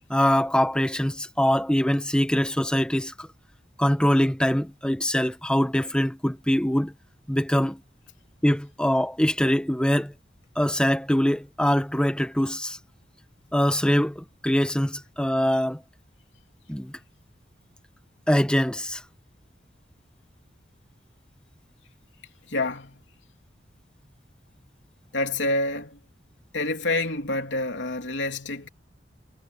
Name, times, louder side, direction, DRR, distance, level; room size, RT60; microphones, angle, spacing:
voice 1, 0.1-3.3 3.8-6.9 7.3-7.8 8.4-10.1 10.5-12.8 13.5-15.8 16.7-16.9 18.3-19.0, equal, 5° left, 1.3 m, -23 dB
voice 2, 22.5-23.0 25.1-26.0 26.5-28.7, left 2 dB, 80° left, 3.5 m, -27 dB
head